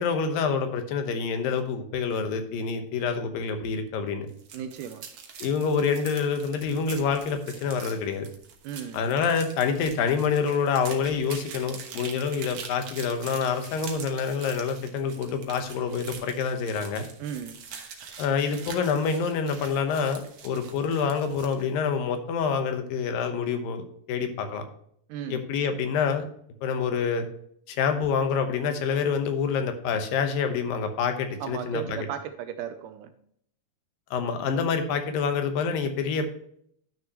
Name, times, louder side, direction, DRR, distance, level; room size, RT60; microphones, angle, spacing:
voice 1, 0.0-4.3 5.4-8.3 8.9-17.1 18.2-24.6 25.3-26.3 26.6-27.3 27.7-32.1 34.1-36.3, left 6 dB, 80° left, 6 dB, 2.8 m, -27 dB
sound 1, 4.3-21.7, right 6 dB, 60° right, 1.7 m, -44 dB
voice 2, 4.5-5.0 8.6-9.0 17.2-17.6 25.1-25.4 31.4-33.1, right 8 dB, 80° right, 8 dB, 2.0 m, -35 dB
12.0 x 6.3 x 2.9 m, 0.67 s
omnidirectional pair, 4.0 m